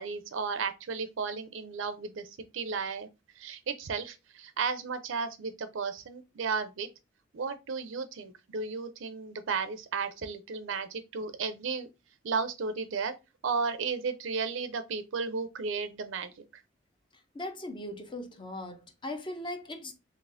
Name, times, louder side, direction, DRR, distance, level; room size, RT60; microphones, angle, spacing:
voice 1, 0.0-2.3 2.5-3.1 3.4-6.9 7.3-11.9 12.2-13.1 13.4-16.3, right 5 dB, 70° right, 0.5 m, -34 dB
voice 2, 17.3-19.9, left 1 dB, 25° left, 0.6 m, -39 dB
4.0 x 3.0 x 2.5 m
head